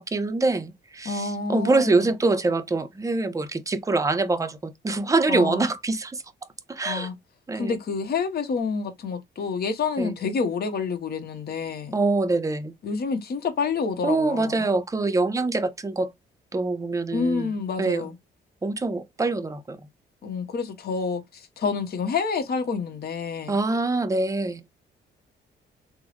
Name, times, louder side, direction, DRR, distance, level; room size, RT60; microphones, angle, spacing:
voice 1, 0.0-6.2 6.7-7.1 7.5-7.8 10.0-10.2 11.9-12.7 14.0-16.1 16.5-18.1 18.6-19.8 23.5-24.6, right 3 dB, 15° right, 0.5 m, -25 dB
voice 2, 1.0-2.1 5.3-5.6 6.8-7.1 7.5-11.9 12.8-14.7 17.1-18.1 20.2-23.6, left 5 dB, 50° left, 0.9 m, -28 dB
3.5 x 2.0 x 3.1 m
cardioid pair, 90°, 20 cm